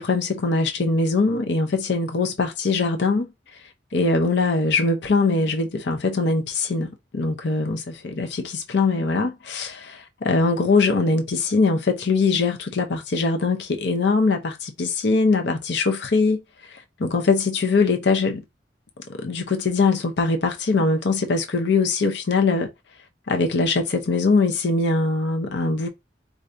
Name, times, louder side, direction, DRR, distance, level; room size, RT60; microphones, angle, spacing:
voice 1, 0.0-3.6 3.9-16.4 16.7-18.4 19.1-22.7 23.3-25.9, left 3 dB, 65° left, 0.7 m, -22 dB
4.4 x 2.6 x 2.5 m
head